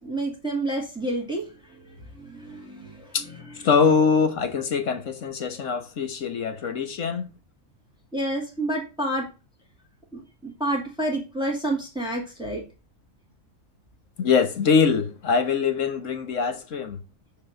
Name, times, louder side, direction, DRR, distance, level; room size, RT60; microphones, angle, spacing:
voice 1, 0.0-3.5 8.1-9.3 10.1-12.6, right 1 dB, 5° right, 2.2 m, -29 dB
voice 2, 3.6-7.2 14.2-17.0, left 5 dB, 65° left, 1.4 m, -23 dB
6.9 x 4.2 x 6.5 m
omnidirectional pair, 1.4 m